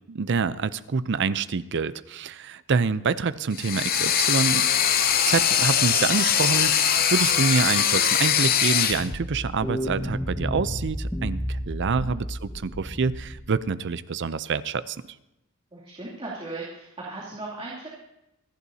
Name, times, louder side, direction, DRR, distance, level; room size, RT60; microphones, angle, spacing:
voice 1, 0.1-4.7 5.2-15.0, right 5 dB, 55° right, 14 dB, 0.5 m, -26 dB
sound 1, 3.5-9.1, left 9 dB, 40° left, 0.7 m, -22 dB
sound 2, 8.9-13.6, equal, 10° left, 1.0 m, -31 dB
voice 2, 15.7-17.9, right 2 dB, 25° right, -7 dB, 2.7 m, -37 dB
27.0 x 11.0 x 2.8 m, 0.89 s
head